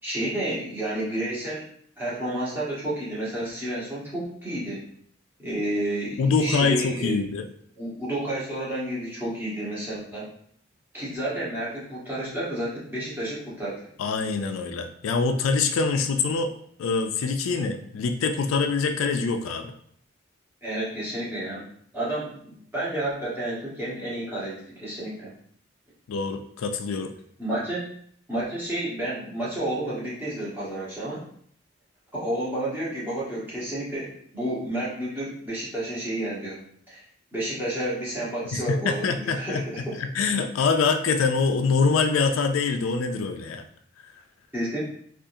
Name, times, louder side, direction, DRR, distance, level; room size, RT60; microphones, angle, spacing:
voice 1, 0.0-1.7 2.0-4.9 5.4-7.2 7.8-10.3 10.9-13.9 20.6-21.6 21.9-25.3 27.4-27.8 28.3-31.2 32.1-36.6 36.9-37.0 37.3-40.0 44.5-44.8, right 1 dB, 10° right, -9 dB, 1.2 m, -30 dB
voice 2, 6.2-7.5 14.0-16.5 16.8-19.7 26.1-27.1 38.5-43.6, left 4 dB, 85° left, 6 dB, 0.4 m, -24 dB
3.6 x 2.4 x 2.7 m, 0.64 s
head